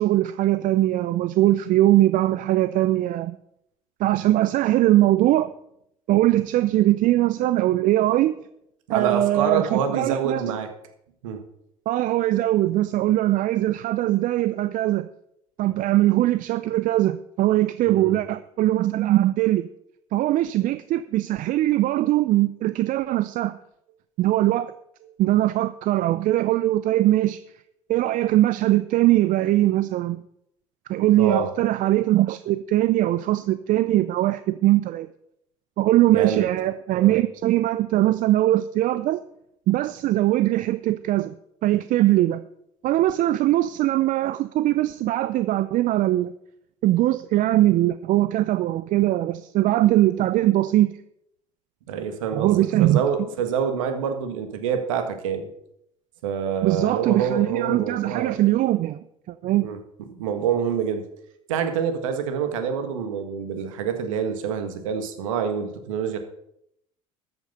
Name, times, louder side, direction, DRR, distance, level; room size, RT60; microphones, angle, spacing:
voice 1, 0.0-3.4 4.0-5.5 6.1-8.4 8.9-10.4 11.9-15.1 15.6-19.6 20.1-23.6 24.2-24.7 25.2-27.4 27.9-30.2 30.9-35.1 35.8-39.2 39.7-41.3 41.6-42.4 42.8-46.3 46.8-50.9 52.3-53.0 56.6-59.0 59.3-59.7, right 15 dB, 50° right, 13 dB, 0.6 m, -21 dB
voice 2, 8.9-10.7 11.2-11.4 17.9-18.2 31.2-31.5 36.1-36.4 36.9-37.1 51.9-55.5 56.2-58.4 59.6-59.8 60.1-61.1 61.5-66.2, right 7 dB, 75° right, 7 dB, 1.6 m, -26 dB
13.5 x 8.4 x 5.4 m, 0.75 s
hypercardioid pair, 65°, 17 cm